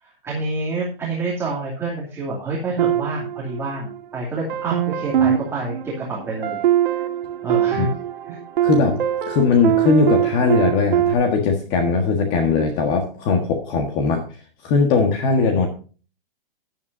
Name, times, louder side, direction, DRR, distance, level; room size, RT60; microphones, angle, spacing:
voice 1, 0.0-6.6 6.9-7.0 7.4-7.9 8.3-8.4, right 3 dB, 10° right, -4 dB, 2.5 m, -28 dB
sound 1, 2.8-4.0 4.5-11.1, right 11 dB, 60° right, 1.7 m, -22 dB
voice 2, 8.6-9.0 9.3-14.2 14.6-15.7, left 4 dB, 25° left, 4 dB, 1.5 m, -19 dB
13.5 x 11.0 x 2.7 m, 0.37 s
hypercardioid pair, 155°, 29 cm